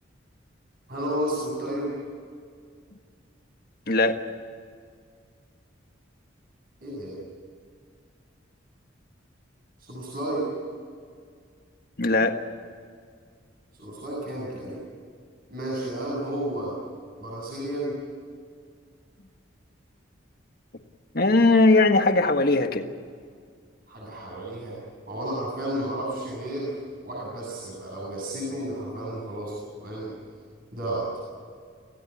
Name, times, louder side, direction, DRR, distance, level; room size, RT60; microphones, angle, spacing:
voice 1, 0.9-2.0 6.8-7.2 9.8-10.5 13.7-14.8 15.5-16.8 17.2-17.9 23.9-24.8 25.1-26.8 27.0-30.1 30.7-31.1, right 1 dB, 45° right, -4 dB, 7.7 m, -32 dB
voice 2, 3.9-4.2 12.0-12.4 21.1-22.9, left 2 dB, 50° left, 6 dB, 1.6 m, -19 dB
27.5 x 17.0 x 8.5 m, 2.1 s
head